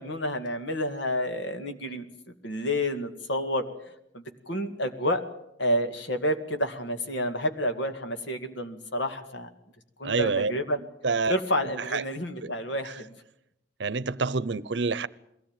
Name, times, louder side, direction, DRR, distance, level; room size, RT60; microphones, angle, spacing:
voice 1, 0.0-2.1 2.4-3.6 4.1-5.2 5.6-9.5 10.0-10.8 11.3-13.2, equal, 75° left, 2.1 m, -29 dB
voice 2, 10.0-10.5 11.0-11.4 11.6-12.0 12.4-12.5 12.8-12.9 13.8-15.1, right 4 dB, 70° right, 0.8 m, -27 dB
22.0 x 17.0 x 9.0 m
head